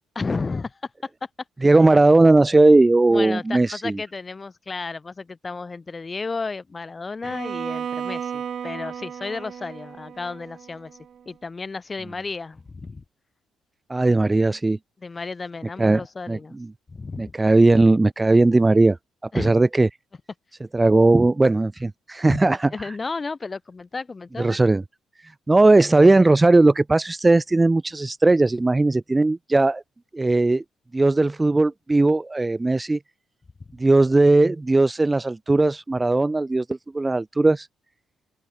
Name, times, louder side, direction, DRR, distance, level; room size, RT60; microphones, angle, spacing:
voice 1, 0.1-1.3 1.6-1.7 3.1-11.0 11.2-13.0 15.0-16.5 16.9-17.3 19.3-19.6 22.3-22.4 22.7-24.6, left 4 dB, 30° left, 5.1 m, -33 dB
voice 2, 1.6-4.0 13.9-14.8 15.8-16.0 16.3-16.4 17.2-19.0 19.3-19.9 20.7-22.7 24.4-24.8 25.5-29.8 30.1-30.6 30.9-33.0 33.8-37.7, right 2 dB, 20° right, 0.4 m, -18 dB
Bowed string instrument, 7.2-11.2, right 8 dB, 55° right, 1.5 m, -34 dB
open air
hypercardioid pair, 45°, 0 cm